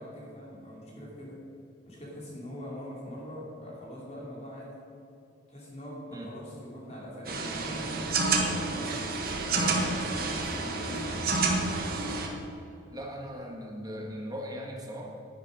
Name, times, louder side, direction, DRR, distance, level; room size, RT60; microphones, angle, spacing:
voice 1, 0.0-1.4 1.8-4.9 5.5-8.0 8.6-9.1 9.4-11.2, equal, 35° left, -4 dB, 2.8 m, -43 dB
sound 1, 7.2-12.3, right 3 dB, 50° right, 1.3 m, -29 dB
voice 2, 9.5-10.1 12.9-15.1, equal, 20° right, 0 dB, 1.5 m, -39 dB
10.5 x 10.0 x 5.2 m, 2.7 s
head